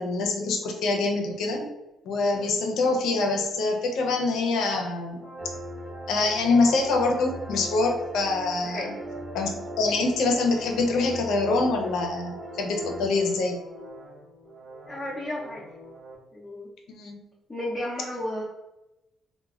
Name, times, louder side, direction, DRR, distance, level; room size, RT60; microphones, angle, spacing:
voice 1, 0.0-1.7 2.0-5.2 6.1-8.9 9.3-13.6 16.9-17.2, left 3 dB, 85° left, 2 dB, 0.5 m, -25 dB
sound 1, 2.2-16.1, right 2 dB, 85° right, 0.8 m, -44 dB
sound 2, 5.4-13.1, equal, 40° right, 0.7 m, -40 dB
voice 2, 8.6-9.0 14.9-15.6 16.3-16.7 17.5-18.4, left 1 dB, 20° left, -6 dB, 0.5 m, -33 dB
3.0 x 2.1 x 2.3 m, 0.97 s
cardioid pair, 90°, 0 cm